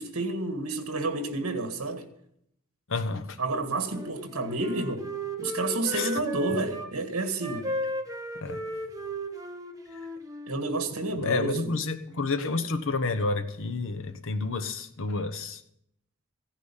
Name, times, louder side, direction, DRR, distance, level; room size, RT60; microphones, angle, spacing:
voice 1, 0.0-2.1 3.4-5.1 5.4-7.7 10.5-11.7, right 2 dB, 70° right, 1.7 m, -30 dB
voice 2, 2.9-3.4 5.9-6.2 8.3-8.6 9.9-10.0 11.2-15.6, left 3 dB, 65° left, 1.1 m, -30 dB
Wind instrument woodwind instrument, 3.8-6.9 7.4-10.6, right 1 dB, 15° right, 1.2 m, -35 dB
15.5 x 10.0 x 5.7 m
head